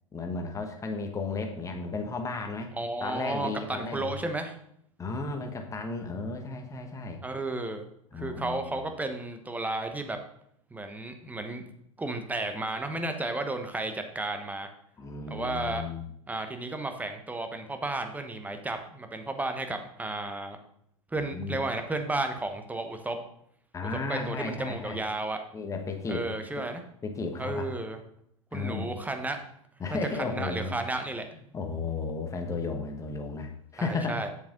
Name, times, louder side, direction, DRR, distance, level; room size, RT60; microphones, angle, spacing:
voice 1, 0.1-2.7 3.0-4.2 5.0-7.2 8.1-8.7 15.0-16.0 21.2-21.6 23.7-25.0 25.5-26.2 27.0-27.7 28.5-28.9 29.8-30.8 31.5-34.3, left 3 dB, 15° left, 4 dB, 1.3 m, -34 dB
voice 2, 2.8-4.6 7.2-7.8 8.1-10.2 10.7-11.6 12.0-14.7 15.3-15.9 16.3-20.6 21.1-23.2 24.1-25.4 26.1-26.8 27.4-28.0 28.5-29.4 29.9-31.3 33.8-34.3, right 2 dB, 10° right, 7 dB, 1.0 m, -33 dB
7.6 x 7.1 x 3.8 m, 0.69 s
figure-of-eight pair, 90°, 18 cm